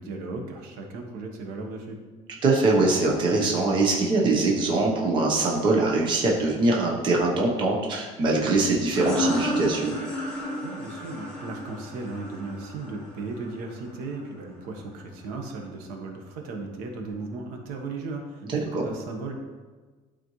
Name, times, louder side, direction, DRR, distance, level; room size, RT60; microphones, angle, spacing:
voice 1, 0.0-2.0 10.6-19.3, right 3 dB, 70° right, 2 dB, 1.2 m, -36 dB
voice 2, 2.4-10.0 18.7-18.8, right 3 dB, 30° right, -2 dB, 0.9 m, -23 dB
sound 1, 8.8-14.2, left 1 dB, 10° left, 2.1 m, -32 dB
12.0 x 4.3 x 3.1 m, 1.4 s
cardioid pair, 180°, 15 cm